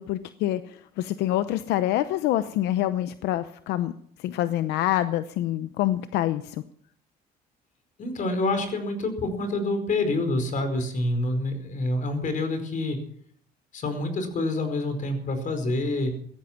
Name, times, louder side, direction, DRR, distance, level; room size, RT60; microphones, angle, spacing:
voice 1, 0.0-3.9 4.2-6.6, left 13 dB, 85° left, 12 dB, 0.8 m, -26 dB
voice 2, 8.0-13.0 13.7-16.1, left 2 dB, 50° left, 8 dB, 4.7 m, -27 dB
17.5 x 14.0 x 6.0 m, 0.63 s
cardioid pair, 110°, 17 cm